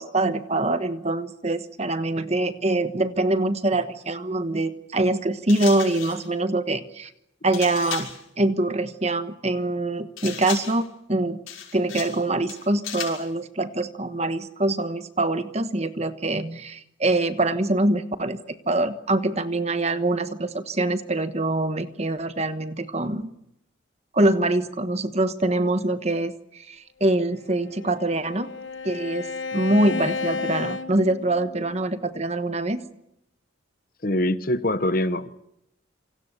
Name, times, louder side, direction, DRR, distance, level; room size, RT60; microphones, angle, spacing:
voice 1, 0.0-7.1 7.4-8.1 8.4-11.4 11.7-23.3 24.1-28.5 28.8-32.9, right 2 dB, 30° right, 1.2 m, -24 dB
sound 1, 5.5-6.3 7.5-8.2 10.2-10.9 11.5-12.2 12.5-13.3, left 9 dB, 90° left, 6.0 m, -35 dB
Bowed string instrument, 27.3-31.8, left 4 dB, 75° left, 1.4 m, -33 dB
voice 2, 34.0-35.3, left 1 dB, 45° left, 1.1 m, -24 dB
27.5 x 25.5 x 6.8 m
head